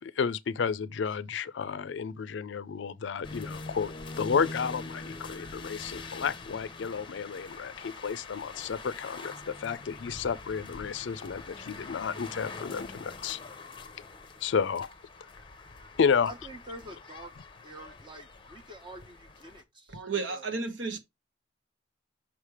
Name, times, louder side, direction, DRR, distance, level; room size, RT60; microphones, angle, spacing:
voice 1, 0.0-13.4 14.4-14.9 16.0-16.3, left 6 dB, 65° left, 0.4 m, -31 dB
sound 1, 3.2-19.6, left 3 dB, 25° left, 0.8 m, -44 dB
voice 2, 16.2-17.3 17.6-20.0 20.3-20.4, right 1 dB, 25° right, 1.2 m, -46 dB
voice 3, 19.9-21.0, right 4 dB, 75° right, 1.2 m, -33 dB
6.1 x 3.2 x 4.8 m
head